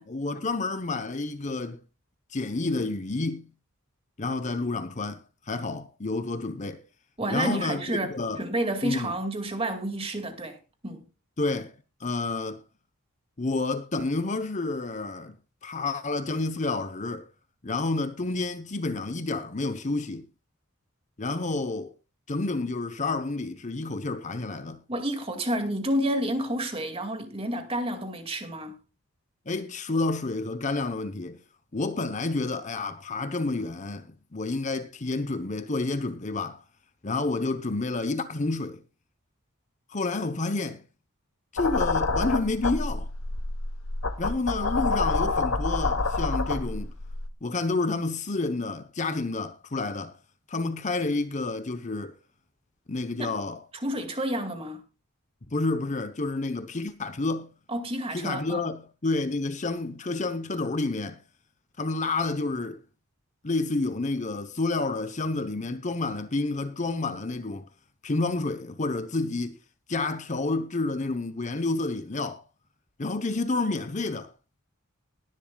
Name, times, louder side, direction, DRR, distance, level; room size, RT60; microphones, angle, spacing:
voice 1, 0.1-1.8 2.3-3.5 4.2-6.8 7.3-7.8 8.1-8.4 8.8-9.1 11.4-11.7 12.0-12.6 13.4-15.4 15.6-17.3 17.6-20.3 21.2-21.9 22.3-24.8 29.5-31.4 31.7-36.6 37.0-38.8 39.9-40.8 41.5-43.1 44.2-46.9 47.4-50.1 50.5-52.1 52.9-53.6 55.5-57.5 58.1-61.2 61.8-62.8 63.4-67.7 68.0-69.6 69.9-72.4 73.0-74.3, left 3 dB, 35° left, 0.9 m, -29 dB
voice 2, 7.2-10.6 10.8-11.1 24.9-28.8 53.2-53.3 53.8-54.8 57.7-58.7, right 1 dB, 25° right, 2.2 m, -30 dB
sound 1, 41.6-47.3, left 3 dB, 70° left, 1.1 m, -28 dB
20.5 x 11.0 x 2.4 m
head